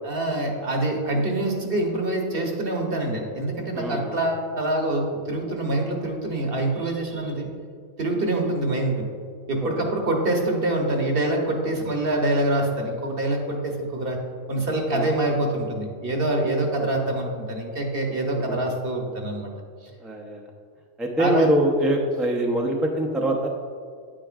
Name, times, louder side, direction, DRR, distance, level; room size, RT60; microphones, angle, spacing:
voice 1, 0.0-7.5 8.0-9.1 9.5-14.2 14.5-19.5 21.2-21.5, right 1 dB, 50° right, 1 dB, 1.2 m, -25 dB
voice 2, 3.7-4.2 9.8-9.9 14.9-15.1 16.8-16.9 18.3-18.6 20.0-20.5 21.0-23.5, right 1 dB, ahead, 0 dB, 0.5 m, -24 dB
9.5 x 8.9 x 2.4 m, 2.1 s
omnidirectional pair, 1.3 m